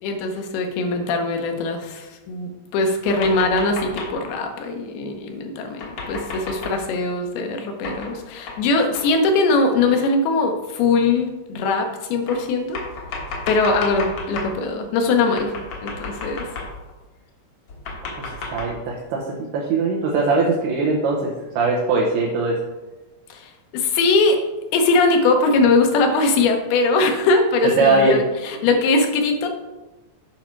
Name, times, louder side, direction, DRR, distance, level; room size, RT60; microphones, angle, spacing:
voice 1, 0.0-12.8 13.5-15.5 15.8-16.5 23.3-24.4 24.7-29.5, left 3 dB, 80° left, 4 dB, 2.9 m, -21 dB
sound 1, 3.1-4.3 5.8-6.8 7.8-8.2 8.5-8.6 8.9-9.1 9.9-10.0 11.0-11.1 12.3-14.6 15.4-16.9 17.7-18.8, left 3 dB, 60° left, 1.6 m, -32 dB
voice 2, 18.2-19.2 19.5-21.2 21.6-22.6 27.8-28.2, right 3 dB, 80° right, -3 dB, 3.1 m, -20 dB
8.9 x 5.8 x 4.6 m, 1.1 s
omnidirectional pair, 4.5 m